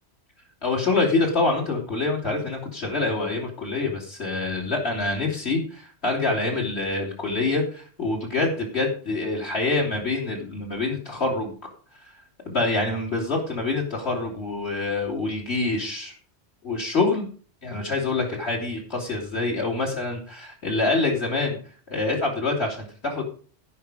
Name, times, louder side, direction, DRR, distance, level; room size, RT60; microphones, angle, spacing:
voice 1, 0.6-11.5 12.0-12.1 12.4-16.1 16.6-17.2 17.6-21.6 21.9-23.2, left 3 dB, 65° left, 0 dB, 3.1 m, -26 dB
16.5 x 5.5 x 4.9 m, 0.42 s
omnidirectional pair, 1.2 m